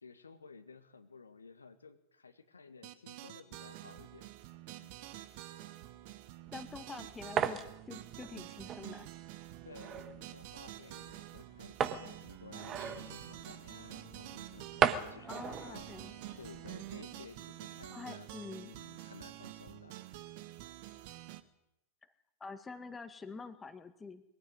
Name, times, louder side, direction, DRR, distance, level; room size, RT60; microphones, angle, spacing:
voice 1, 0.0-4.3 4.8-4.9 9.7-15.9 16.4-18.3 18.6-20.0, left 4 dB, 75° left, 8 dB, 1.7 m, -54 dB
sound 1, 2.8-21.4, right 15 dB, 45° right, 1.4 m, -48 dB
voice 2, 6.5-7.6 7.9-9.1 15.3-16.1 17.9-18.8 22.4-24.2, left 4 dB, 15° left, 8 dB, 1.9 m, -46 dB
sound 2, 6.5-16.9, right 8 dB, 30° right, 1.5 m, -38 dB
sound 3, 12.7-18.6, left 8 dB, 50° left, 2.6 m, -59 dB
22.5 x 15.5 x 9.4 m, 0.85 s
figure-of-eight pair, 90°, 0 cm